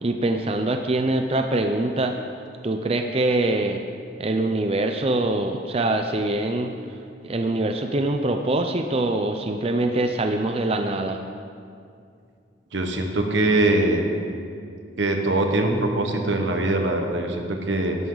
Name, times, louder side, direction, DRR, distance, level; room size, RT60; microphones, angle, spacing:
voice 1, 0.0-2.2 2.6-3.8 4.2-6.7 7.2-11.2, right 2 dB, 30° right, 5 dB, 0.5 m, -24 dB
voice 2, 12.7-14.1 15.0-18.0, right 2 dB, 80° right, 3 dB, 1.4 m, -22 dB
15.5 x 11.0 x 4.0 m, 2.4 s
head